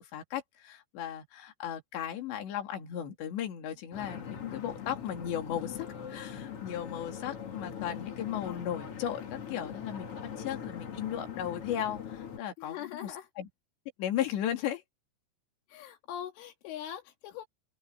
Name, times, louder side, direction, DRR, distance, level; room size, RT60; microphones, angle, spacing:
voice 1, 0.0-12.8 13.0-13.5 14.0-14.8, left 10 dB, 70° left, 4.9 m, -36 dB
sound 1, 3.9-12.4, left 8 dB, 45° left, 2.0 m, -41 dB
voice 2, 12.6-13.3 14.6-14.7 15.7-17.5, left 10 dB, 85° left, 4.6 m, -42 dB
open air
omnidirectional pair, 5.5 m